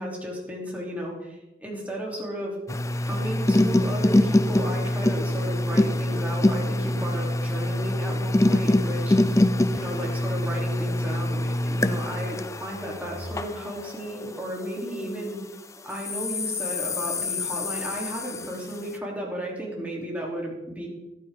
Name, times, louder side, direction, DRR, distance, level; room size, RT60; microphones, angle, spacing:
voice 1, 0.0-2.5 3.0-9.1 9.7-15.4 15.8-20.9, equal, 10° right, -3 dB, 3.2 m, -34 dB
sound 1, 2.7-15.3 15.9-18.8, left 1 dB, 15° left, 0.5 m, -25 dB
14.0 x 12.0 x 3.7 m, 1.0 s
head